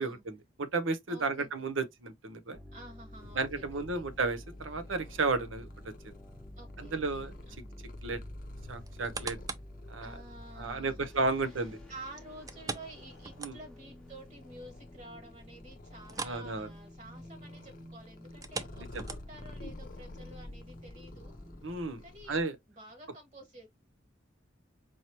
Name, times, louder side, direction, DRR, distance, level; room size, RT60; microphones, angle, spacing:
voice 1, 0.0-2.6 3.4-6.1 6.8-7.3 8.0-8.2 8.7-9.4 9.9-10.1 10.6-11.8 13.4-13.6 16.2-16.7 18.8-19.0 21.6-22.0 22.3-22.6, right 3 dB, 80° right, 0.8 m, -33 dB
voice 2, 1.1-1.5 2.7-4.1 6.6-7.7 10.0-11.1 11.4-11.6 11.9-21.3 22.0-22.4 22.7-23.7, right 1 dB, 35° right, 1.7 m, -51 dB
sound 1, 2.5-21.6, left 1 dB, 5° left, 1.0 m, -50 dB
Purr, 3.1-22.4, left 2 dB, 45° left, 0.7 m, -51 dB
sound 2, 8.8-9.8 10.3-10.4 12.5-13.9 14.3-14.4 14.8-14.9 16.0-16.5 16.7-17.0 18.3-19.5 20.2-20.3, right 4 dB, 20° right, 0.4 m, -41 dB
4.6 x 3.0 x 2.8 m
head